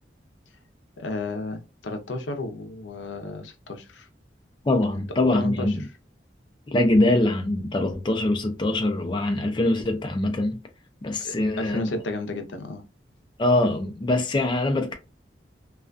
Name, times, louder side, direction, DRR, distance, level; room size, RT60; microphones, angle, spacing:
voice 1, 1.0-4.1 4.9-5.9 11.2-12.9, left 2 dB, 85° left, 0.6 m, -33 dB
voice 2, 4.7-5.8 6.7-10.6 11.0-11.9 13.4-14.9, left 1 dB, 25° left, 0.4 m, -23 dB
2.4 x 2.2 x 2.4 m
head